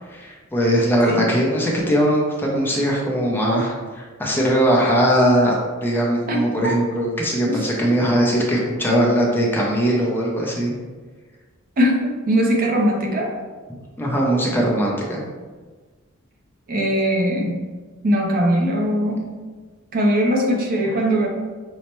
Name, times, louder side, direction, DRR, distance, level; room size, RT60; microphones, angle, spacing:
voice 1, 0.1-5.6 5.8-10.7 14.0-15.2, equal, 10° left, -3 dB, 0.5 m, -20 dB
voice 2, 11.8-13.3 16.7-17.6 18.0-19.3 19.9-21.3, equal, 45° right, 1 dB, 0.5 m, -20 dB
5.4 x 2.1 x 2.9 m, 1.4 s
head